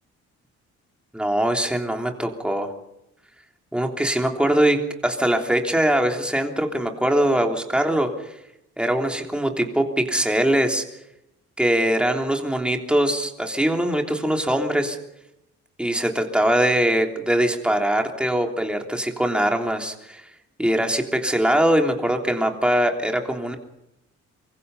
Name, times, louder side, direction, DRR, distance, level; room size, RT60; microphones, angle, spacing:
voice 1, 1.1-2.7 3.7-8.1 8.8-10.8 11.6-15.0 15.8-20.3 20.6-23.6, right 1 dB, 5° right, 3 dB, 3.2 m, -22 dB
25.0 x 23.5 x 5.5 m, 0.86 s
cardioid pair, 140°, 30 cm